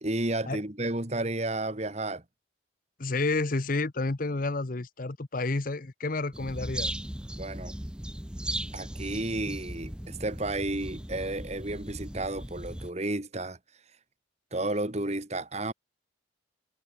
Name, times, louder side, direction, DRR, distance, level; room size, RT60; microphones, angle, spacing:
voice 1, 0.0-2.2 7.3-7.8 8.7-13.6 14.5-15.7, right 2 dB, 35° right, 2.0 m, -32 dB
voice 2, 3.0-6.9, left 3 dB, 45° left, 0.9 m, -30 dB
sound 1, 6.3-12.9, right 1 dB, 5° right, 0.7 m, -37 dB
head